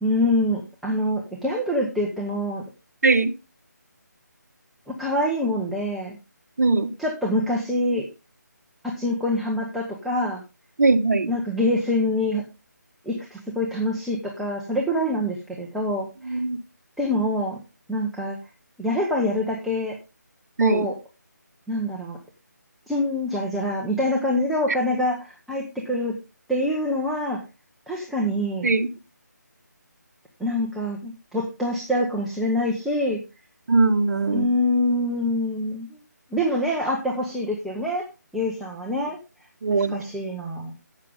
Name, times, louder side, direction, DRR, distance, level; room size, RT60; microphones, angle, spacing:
voice 1, 0.0-2.6 4.9-6.2 7.0-8.1 8.8-10.4 11.3-12.4 13.0-16.4 17.0-17.6 17.9-18.4 18.8-20.0 20.6-20.9 21.7-22.2 22.9-26.2 26.5-27.4 27.9-28.7 30.4-33.2 34.3-35.9 36.3-38.0 38.3-39.2 39.7-40.7, left 1 dB, ahead, 1.0 m, -25 dB
voice 2, 3.0-3.3 6.6-6.9 10.8-11.3 16.2-16.6 20.6-20.9 28.6-28.9 33.7-34.5 39.6-40.0, right 3 dB, 55° right, 1.6 m, -20 dB
12.5 x 8.5 x 3.6 m
figure-of-eight pair, 165°, 10 cm